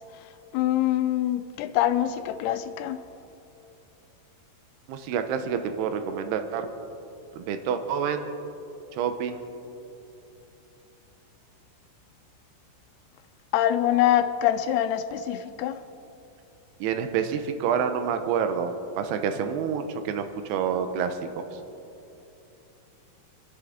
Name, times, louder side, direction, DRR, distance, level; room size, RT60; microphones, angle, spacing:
voice 1, 0.5-3.0 13.5-15.8, left 12 dB, 85° left, 2.7 m, -24 dB
voice 2, 4.9-6.7 7.3-8.3 8.9-9.4 16.8-21.6, right 7 dB, 85° right, 2.9 m, -28 dB
29.0 x 11.0 x 3.7 m
omnidirectional pair, 4.6 m